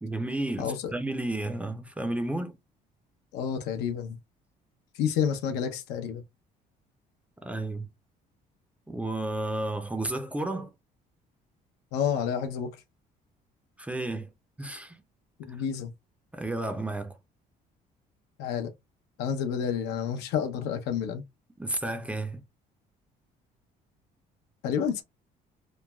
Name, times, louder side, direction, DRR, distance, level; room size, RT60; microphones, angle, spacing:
voice 1, 0.0-2.6 5.5-5.6 7.4-7.9 8.9-10.7 13.8-14.3 14.6-15.0 16.3-17.2 21.6-22.4, right 2 dB, 10° right, 0.5 m, -32 dB
voice 2, 0.6-0.9 3.3-4.2 4.9-6.2 11.9-12.7 15.4-15.9 18.4-18.7 19.2-21.2 24.6-25.0, left 8 dB, 90° left, 0.6 m, -29 dB
3.1 x 2.2 x 2.2 m
cardioid pair, 110°, 17 cm